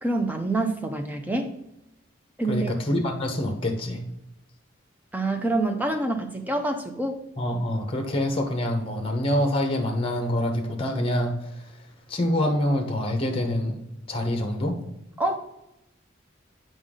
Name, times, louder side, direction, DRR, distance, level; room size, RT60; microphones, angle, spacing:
voice 1, 0.0-1.5 2.4-2.7 5.1-7.2 15.2-15.4, right 2 dB, 10° right, 4 dB, 0.6 m, -26 dB
voice 2, 2.5-4.1 7.4-11.7 12.1-13.8 14.1-14.8, left 1 dB, 30° left, 5 dB, 1.0 m, -26 dB
7.9 x 5.2 x 3.7 m, 0.88 s
head